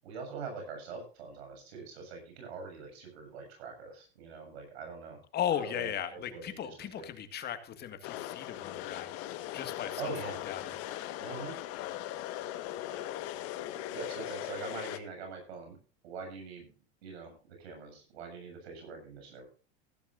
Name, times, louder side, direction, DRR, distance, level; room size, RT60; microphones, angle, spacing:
voice 1, 0.0-5.2 5.5-7.1 10.0-10.4 11.2-11.6 13.9-15.8 16.0-16.7 17.0-17.3 17.6-19.5, right 4 dB, 80° right, 4 dB, 7.6 m, -43 dB
voice 2, 5.3-10.8, left 10 dB, 30° left, 10 dB, 1.9 m, -37 dB
sound 1, 8.0-15.0, left 13 dB, 50° left, 1.6 m, -39 dB
15.5 x 14.0 x 2.6 m, 0.37 s
supercardioid pair, 130°, 31 cm